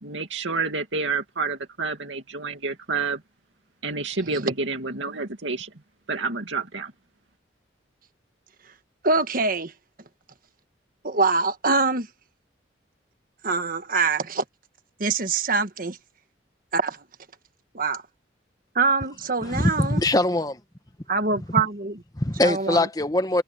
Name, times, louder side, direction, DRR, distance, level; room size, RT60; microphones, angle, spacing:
voice 1, 0.0-3.2 3.8-5.7 6.1-6.9, right 4 dB, 80° right, 2.4 m, -29 dB
voice 2, 9.0-9.7 11.0-12.1 13.4-14.4 15.0-16.0 16.7-17.0 17.7-18.0 18.7-20.0 21.1-22.0 22.4-22.9, right 4 dB, 50° right, 1.5 m, -24 dB
voice 3, 19.4-20.6 22.1-23.4, left 1 dB, 20° left, 1.3 m, -22 dB
head